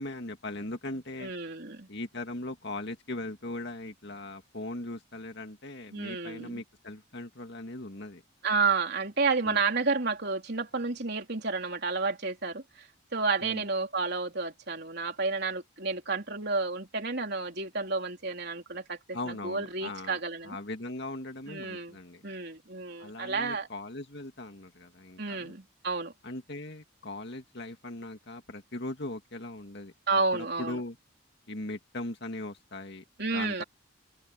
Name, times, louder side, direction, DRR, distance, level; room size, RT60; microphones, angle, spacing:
voice 1, 0.0-1.3 1.9-8.2 9.4-9.6 13.4-13.6 19.1-20.2 20.4-22.2 23.0-25.5 26.2-29.9 30.3-31.0 31.5-33.0 33.3-33.6, left 2 dB, 50° left, 2.4 m, -39 dB
voice 2, 1.2-1.9 5.9-6.6 8.4-12.9 13.1-20.6 21.5-22.0 22.2-23.7 25.2-26.1 30.1-30.8 33.2-33.6, right 4 dB, 50° right, 3.8 m, -31 dB
open air
head